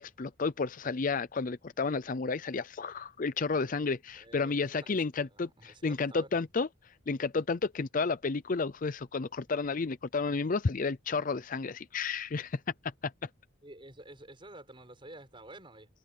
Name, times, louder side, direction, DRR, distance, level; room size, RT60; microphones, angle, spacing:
voice 1, 0.0-6.7 7.1-12.6 13.0-13.3, left 4 dB, 40° left, 0.5 m, -32 dB
voice 2, 4.2-6.4 13.6-15.9, right 1 dB, 25° right, 7.3 m, -51 dB
head